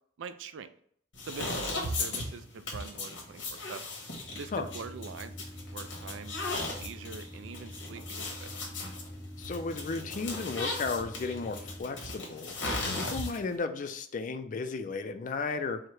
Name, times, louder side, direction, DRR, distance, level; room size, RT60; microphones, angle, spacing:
voice 1, 0.2-0.7 1.2-3.8 4.4-6.3 6.8-8.5, right 5 dB, 80° right, 11 dB, 0.4 m, -44 dB
sound 1, 1.1-13.6, left 2 dB, 90° left, 1.2 m, -37 dB
sound 2, 4.3-11.8, equal, 5° left, 0.7 m, -45 dB
voice 2, 9.4-12.6 12.9-15.8, left 4 dB, 45° left, 9 dB, 0.4 m, -34 dB
4.7 x 2.2 x 4.6 m, 0.64 s
head